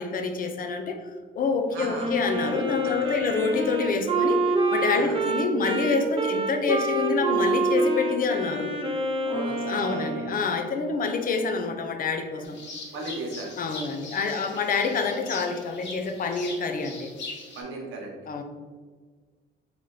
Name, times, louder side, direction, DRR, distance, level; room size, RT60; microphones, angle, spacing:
voice 1, 0.0-8.7 9.6-12.6 13.6-17.1 18.3-18.4, left 4 dB, 45° left, 5 dB, 0.5 m, -27 dB
voice 2, 1.7-2.1 2.8-2.9 4.9-5.2 9.2-10.1 12.9-13.6 17.5-18.2, right 2 dB, 85° right, -1 dB, 0.9 m, -36 dB
Wind instrument woodwind instrument, 2.0-10.5, right 2 dB, 25° right, 0.6 m, -27 dB
sound 1, 12.4-17.6, left 3 dB, 65° left, 1.0 m, -41 dB
3.2 x 2.9 x 3.8 m, 1.5 s
cardioid pair, 90°, 20 cm